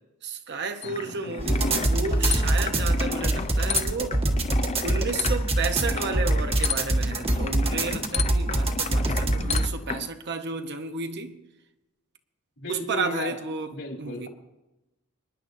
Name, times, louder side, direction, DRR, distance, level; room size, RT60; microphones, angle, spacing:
voice 1, 0.2-4.2 4.8-11.4 12.7-14.3, right 4 dB, 50° right, 0.9 m, -32 dB
sound 1, 0.8-10.1, left 5 dB, 30° left, 0.4 m, -33 dB
sound 2, 1.4-9.7, right 1 dB, 25° right, 1.3 m, -24 dB
voice 2, 12.6-13.3 13.7-14.3, left 2 dB, 60° left, 3.0 m, -34 dB
26.0 x 10.5 x 2.7 m
head